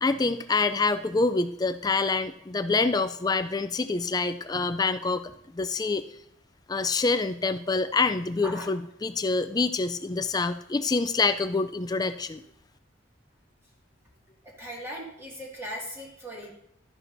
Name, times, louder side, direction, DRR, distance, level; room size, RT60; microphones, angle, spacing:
voice 1, 0.0-6.0 6.7-12.4, left 3 dB, 20° left, 10 dB, 0.3 m, -26 dB
voice 2, 14.4-16.5, equal, 15° right, -3 dB, 2.1 m, -38 dB
12.5 x 10.5 x 2.7 m, 0.75 s
head